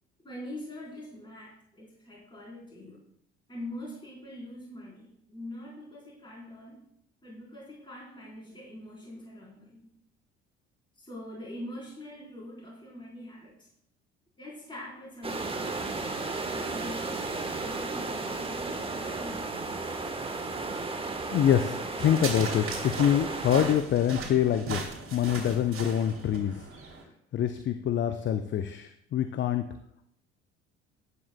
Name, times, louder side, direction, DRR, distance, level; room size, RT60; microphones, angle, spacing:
voice 1, 0.2-3.0 3.5-6.8 7.2-9.9 11.0-13.7 14.4-17.3 17.6-19.8, left 1 dB, 15° left, -5 dB, 3.9 m, -43 dB
sound 1, 15.2-23.7, right 3 dB, 15° right, 1.2 m, -34 dB
voice 2, 21.3-24.8 25.1-26.6 27.3-29.6, left 9 dB, 35° left, 9 dB, 0.6 m, -25 dB
sound 2, 22.0-27.0, right 4 dB, 40° right, 2.8 m, -38 dB
11.5 x 9.7 x 2.2 m, 0.75 s
figure-of-eight pair, 55°, 34 cm